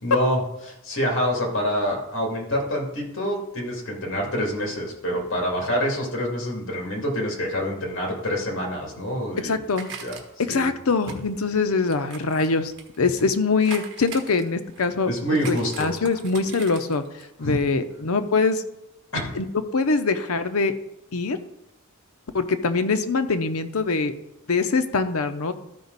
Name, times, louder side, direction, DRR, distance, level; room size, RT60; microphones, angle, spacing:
voice 1, 0.0-9.6 10.0-10.2 10.5-10.7 15.0-15.9 17.4-17.6 19.1-19.2, equal, 60° left, 0 dB, 2.6 m, -26 dB
sound 1, 8.9-10.6 11.0-13.3 13.6-15.0 15.4-17.2 17.5-17.6, right 5 dB, 55° right, 1.3 m, -41 dB
voice 2, 9.4-9.9 10.4-12.7 13.0-15.1 15.5-17.0 17.4-18.6 19.4-19.5 19.7-20.7 21.1-21.4 22.3-24.1 24.5-25.5, left 4 dB, 85° left, 9 dB, 0.7 m, -23 dB
13.0 x 5.2 x 4.0 m, 0.89 s
head